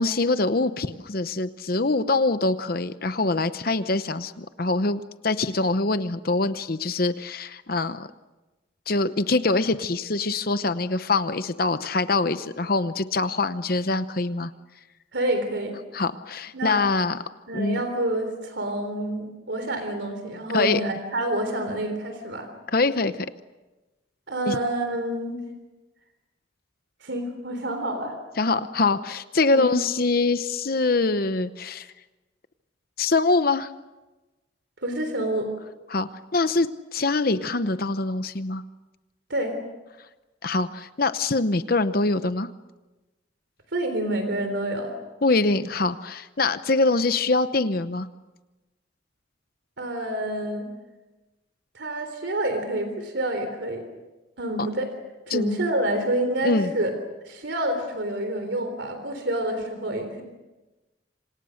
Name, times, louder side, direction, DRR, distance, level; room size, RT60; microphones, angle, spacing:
voice 1, 0.0-8.1 8.9-14.5 15.9-17.2 17.5-17.8 20.5-20.8 22.7-23.3 24.5-24.6 28.4-31.9 33.0-33.7 35.9-38.6 40.4-42.5 45.2-48.1 55.3-55.4 56.4-56.7, left 3 dB, 50° left, 11 dB, 0.8 m, -24 dB
voice 2, 15.1-15.8 16.5-16.8 17.5-22.5 24.3-25.4 27.0-28.2 29.5-29.7 34.8-35.5 39.3-39.6 43.7-44.9 49.8-50.7 51.7-53.9 54.4-54.9 55.3-56.9 57.2-60.2, right 1 dB, 65° right, 7 dB, 3.6 m, -28 dB
28.0 x 26.5 x 6.5 m, 1.1 s
head